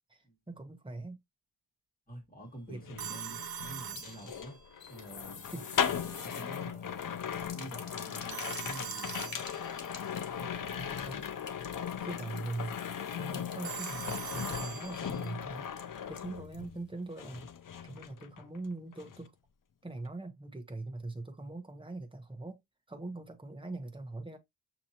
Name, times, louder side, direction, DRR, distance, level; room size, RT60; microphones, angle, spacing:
voice 1, 0.1-1.2 2.7-2.8 4.2-4.3 5.5-5.7 10.9-11.3 12.0-12.8 13.1-17.5 17.8-19.3 19.8-22.6 22.9-24.4, right 2 dB, 10° right, 0.9 m, -42 dB
voice 2, 2.1-4.6 4.9-5.5 5.8-9.4 10.3-11.3, right 1 dB, 20° left, 2.2 m, -48 dB
sound 1, 2.7-16.9 17.2-18.7 18.9-19.3, left 8 dB, 50° left, 0.5 m, -38 dB
Telephone, 3.0-4.8 8.3-10.0 13.6-15.3, right 8 dB, 55° right, 0.8 m, -42 dB
sound 2, 3.7-16.7 17.0-17.1 17.4-17.5, left 5 dB, 80° left, 1.1 m, -49 dB
6.4 x 2.9 x 2.8 m
wide cardioid pair, 145°, 44 cm